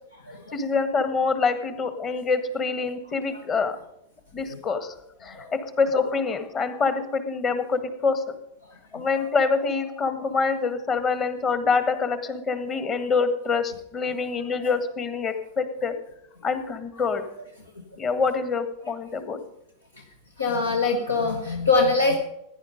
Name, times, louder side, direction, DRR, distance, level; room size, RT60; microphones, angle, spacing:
voice 1, 0.5-3.8 4.3-4.9 5.2-8.2 8.9-16.0 16.4-17.2 18.0-19.4, left 4 dB, 30° left, 10 dB, 1.7 m, -25 dB
voice 2, 20.4-22.2, left 3 dB, 75° left, 3 dB, 1.5 m, -23 dB
17.0 x 10.5 x 5.2 m, 0.81 s
figure-of-eight pair, 90°, 0 cm